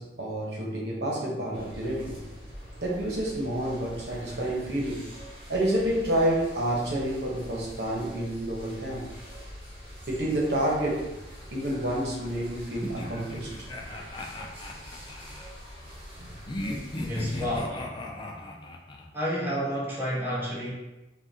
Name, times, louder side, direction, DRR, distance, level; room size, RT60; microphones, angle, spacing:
voice 1, 0.0-2.2 2.8-5.1 5.5-9.0 10.1-11.0 11.5-13.5 16.3-16.4, right 1 dB, 65° right, -3 dB, 1.1 m, -29 dB
sound 1, 1.5-17.6, equal, 30° right, 1.2 m, -44 dB
sound 2, 12.8-15.5 16.5-19.1, left 1 dB, 25° left, 0.4 m, -37 dB
voice 2, 17.0-17.8 19.1-20.7, equal, 15° right, -7 dB, 1.2 m, -30 dB
5.4 x 2.5 x 2.8 m, 1.0 s
head